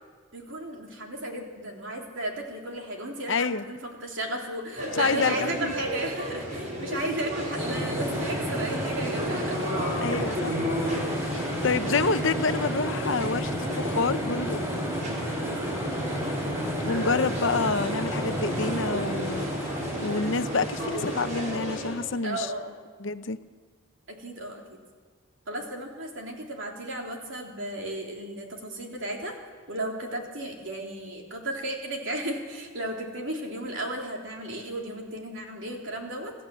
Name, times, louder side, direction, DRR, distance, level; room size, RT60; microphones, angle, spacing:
voice 1, 0.3-9.6 15.4-16.2 22.2-22.8 24.1-24.8 25.5-29.3 29.7-36.3, right 1 dB, 60° right, 0 dB, 3.5 m, -34 dB
voice 2, 3.3-3.6 4.9-5.7 6.9-7.0 10.0-10.7 11.3-14.6 16.8-19.5 20.0-22.5 23.0-23.4, left 4 dB, 60° left, 11 dB, 0.8 m, -28 dB
sound 1, 4.8-21.9, equal, 35° right, 5.1 m, -34 dB
sound 2, 7.6-22.3, equal, 15° right, 4.1 m, -31 dB
26.5 x 14.5 x 7.7 m, 1.5 s
head